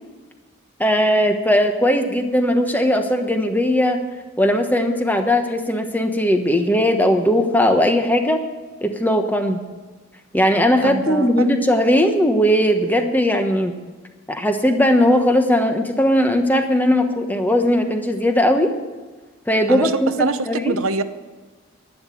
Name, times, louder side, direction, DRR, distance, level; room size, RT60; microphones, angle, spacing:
voice 1, 0.8-4.0 4.4-8.4 8.8-9.6 10.3-13.7 14.3-18.7 19.5-20.7, equal, 10° left, 5 dB, 1.1 m, -18 dB
voice 2, 10.8-11.6 19.7-19.9 20.2-21.0, right 3 dB, 90° right, 10 dB, 0.9 m, -24 dB
11.5 x 10.5 x 8.4 m, 1.3 s
head